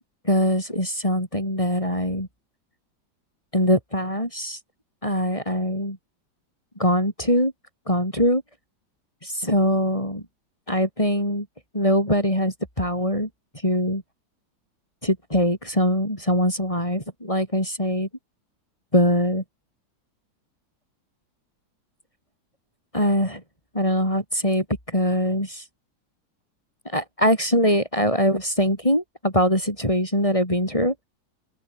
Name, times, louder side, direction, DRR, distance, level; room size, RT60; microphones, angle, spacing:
voice 1, 0.2-2.3 3.5-4.6 5.0-6.0 6.8-7.5 7.9-8.4 9.2-10.2 10.7-11.5 11.7-13.3 13.6-14.0 15.0-18.1 18.9-19.4 22.9-23.4 23.7-25.6 26.8-30.9, equal, 15° left, 7.8 m, -22 dB
open air
omnidirectional pair, 2.1 m